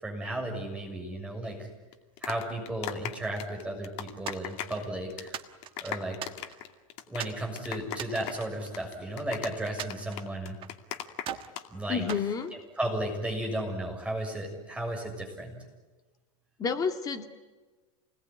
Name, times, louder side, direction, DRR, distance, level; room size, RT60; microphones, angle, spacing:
voice 1, 0.0-1.6 2.2-5.4 5.8-6.2 7.1-10.6 11.7-12.0 12.8-15.6, right 1 dB, 5° right, 1 dB, 6.8 m, -34 dB
sound 1, 1.9-4.8 5.1-5.4 5.6-11.6 11.9-12.2, left 11 dB, 45° left, 2.4 m, -38 dB
sound 2, 4.3-4.9 5.3-6.7 7.2-7.4 7.9-9.3 9.8-10.8 11.2-11.6 12.1-13.1, right 10 dB, 30° right, 1.5 m, -41 dB
voice 2, 11.9-12.5 16.6-17.2, left 6 dB, 20° left, 5 dB, 2.3 m, -29 dB
28.5 x 20.5 x 9.8 m, 1.3 s
supercardioid pair, 145°, 18 cm